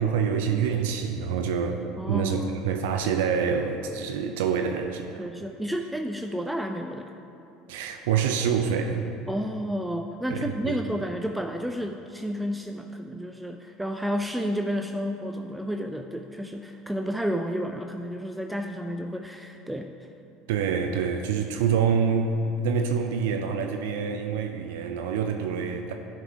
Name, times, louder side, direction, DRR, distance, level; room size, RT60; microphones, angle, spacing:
voice 1, 0.0-5.2 7.7-9.1 10.3-10.8 20.5-25.9, right 6 dB, 75° right, 5 dB, 0.5 m, -26 dB
voice 2, 2.0-2.5 5.2-7.1 9.3-19.9, equal, 5° right, 4 dB, 0.4 m, -31 dB
11.0 x 4.5 x 4.7 m, 2.7 s
hypercardioid pair, 70°, 0 cm